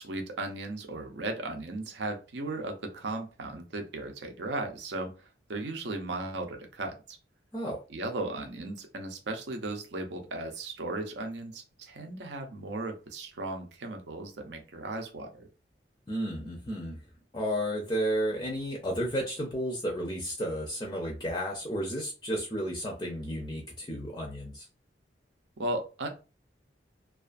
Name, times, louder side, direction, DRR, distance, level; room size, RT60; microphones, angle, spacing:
voice 1, 0.0-7.2 7.9-15.5 25.6-26.1, right 2 dB, 75° right, 4 dB, 0.6 m, -36 dB
voice 2, 16.1-17.0 17.3-24.7, equal, 20° left, -1 dB, 0.4 m, -32 dB
2.4 x 2.4 x 2.4 m, 0.33 s
head